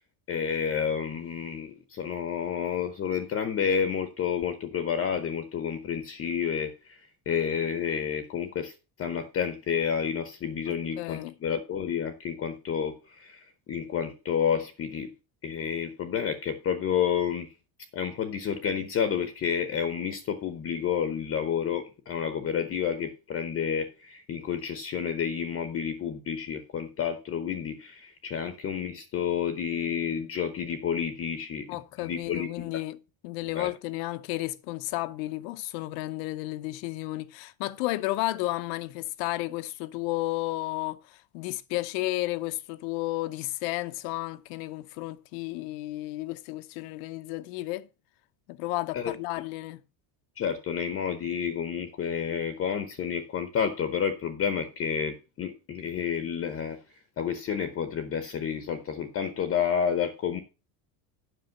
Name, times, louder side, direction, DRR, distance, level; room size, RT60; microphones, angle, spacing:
voice 1, 0.3-7.0 7.3-15.1 15.4-17.5 17.9-32.7 33.5-33.7 48.9-49.1 50.4-56.8 57.2-60.4, left 7 dB, 25° left, 0.8 m, -30 dB
voice 2, 11.0-11.3 31.7-33.0 33.2-47.9 48.5-49.8, left 18 dB, 75° left, 0.8 m, -32 dB
8.0 x 6.2 x 5.7 m
cardioid pair, 160°, 49 cm